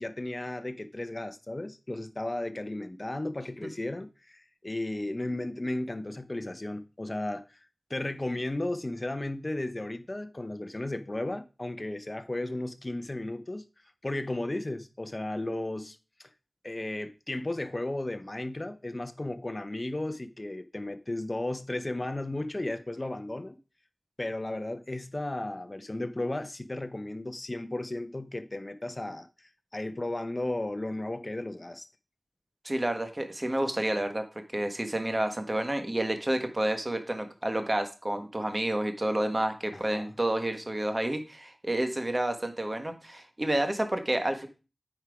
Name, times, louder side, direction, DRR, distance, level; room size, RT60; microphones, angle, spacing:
voice 1, 0.0-7.6 7.9-13.6 14.0-16.3 16.6-23.6 24.2-31.9 39.7-40.1, left 1 dB, 35° left, 0.8 m, -34 dB
voice 2, 32.6-34.2 34.5-44.5, right 1 dB, 30° right, 1.5 m, -29 dB
8.9 x 4.5 x 4.8 m
wide cardioid pair, 45°, 0 cm